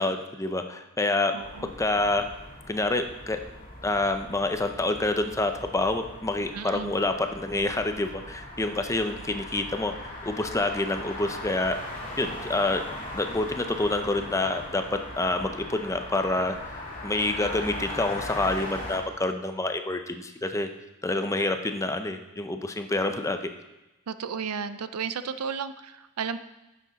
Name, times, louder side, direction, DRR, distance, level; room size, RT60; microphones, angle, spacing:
voice 1, 0.0-1.3 1.6-2.3 2.7-3.4 3.8-9.9 10.2-11.8 12.2-12.8 13.1-20.7 21.0-23.4, left 2 dB, 15° left, 7 dB, 0.6 m, -27 dB
voice 2, 1.3-1.7 6.5-6.9 17.4-17.5 24.1-26.4, right 6 dB, 90° right, 12 dB, 0.5 m, -33 dB
sound 1, 1.4-19.0, left 1 dB, 40° left, 2.2 m, -39 dB
10.5 x 7.3 x 4.0 m, 1.0 s
head